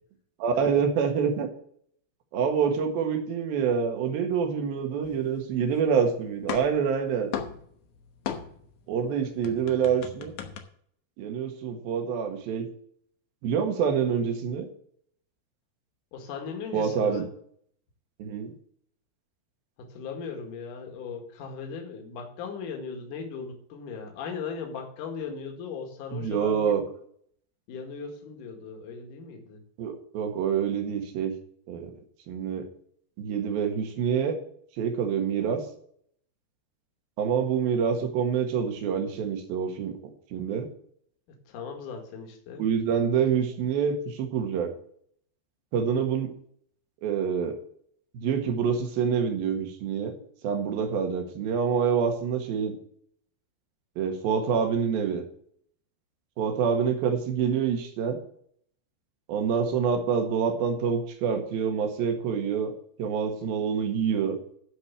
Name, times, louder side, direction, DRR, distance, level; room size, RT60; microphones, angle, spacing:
voice 1, 0.4-1.5 2.3-7.3 8.9-10.3 11.2-12.7 13.4-14.7 16.7-17.2 18.2-18.5 26.1-26.8 29.8-31.3 31.7-31.9 32.3-32.7 33.2-34.4 34.8-35.7 37.2-39.9 40.3-40.7 42.6-44.7 45.7-46.3 47.0-47.6 48.1-50.1 50.4-52.8 54.0-55.2 56.4-58.2 59.3-62.7 63.0-64.4, right 7 dB, 60° right, 4 dB, 3.1 m, -26 dB
sound 1, 5.0-6.0 6.2-8.8 9.1-10.6, left 8 dB, 90° left, 1.7 m, -37 dB
voice 2, 16.1-17.3 19.8-26.8 27.7-29.6 41.5-42.6, left 5 dB, 55° left, 3 dB, 3.0 m, -38 dB
11.5 x 5.2 x 7.3 m, 0.62 s
omnidirectional pair, 5.2 m